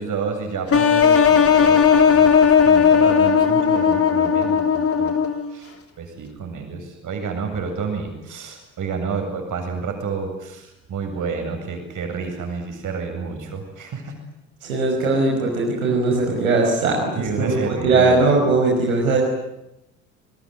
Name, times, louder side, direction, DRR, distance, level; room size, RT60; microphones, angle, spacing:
voice 1, 0.0-5.1 5.5-14.2 17.1-18.2, right 5 dB, 45° right, 4 dB, 7.9 m, -30 dB
sound 1, 0.7-5.6, left 7 dB, 35° left, 3.2 m, -16 dB
voice 2, 14.6-19.2, right 3 dB, 80° right, -1 dB, 5.7 m, -19 dB
28.5 x 21.5 x 9.5 m, 0.88 s
figure-of-eight pair, 55°, 42 cm